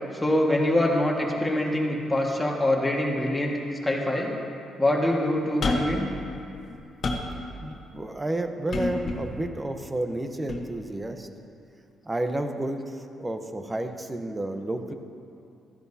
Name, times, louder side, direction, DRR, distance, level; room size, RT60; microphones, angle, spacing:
voice 1, 0.1-3.5 3.8-4.3 4.8-6.1 7.3-7.4, left 1 dB, 15° left, -1 dB, 1.7 m, -24 dB
sound 1, 5.6-6.0 6.6-7.4 8.7-9.3 10.5-10.6, left 3 dB, 50° left, 1.2 m, -28 dB
voice 2, 7.6-11.3 12.0-12.8 13.2-14.9, right 1 dB, 20° right, 6 dB, 0.9 m, -31 dB
15.0 x 13.0 x 2.8 m, 2.6 s
cardioid pair, 90°, 0 cm